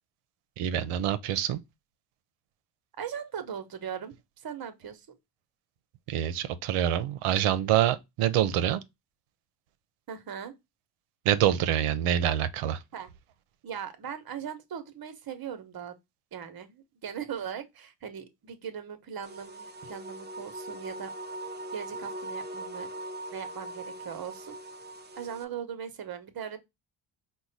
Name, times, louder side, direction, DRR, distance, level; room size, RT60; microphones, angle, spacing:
voice 1, 0.6-1.6 6.1-8.8 11.2-12.8, right 11 dB, 90° right, 0.7 m, -26 dB
voice 2, 3.0-5.1 10.1-10.5 12.9-13.1 13.6-16.0 16.3-21.1 21.7-22.9 23.3-24.6 25.2-26.6, right 8 dB, 45° right, 1.0 m, -39 dB
sound 1, 19.2-25.4, right 1 dB, 20° right, 0.6 m, -40 dB
4.6 x 2.2 x 3.9 m
cardioid pair, 85°, 49 cm